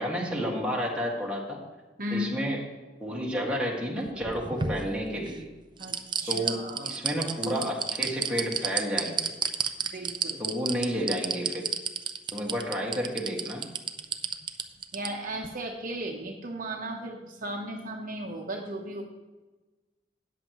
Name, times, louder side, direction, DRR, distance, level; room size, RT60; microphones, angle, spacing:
voice 1, 0.0-1.6 2.1-2.6 3.0-5.5 6.3-9.3 10.4-11.7 12.3-13.6, equal, 5° right, -3 dB, 1.9 m, -31 dB
voice 2, 2.0-2.4 5.8-6.9 9.9-10.4 14.9-19.0, equal, 45° right, 1 dB, 1.0 m, -35 dB
sound 1, 4.1-5.4 5.8-15.1 15.4-15.5, right 6 dB, 25° right, 0.5 m, -30 dB
13.5 x 9.3 x 3.1 m, 1.2 s
head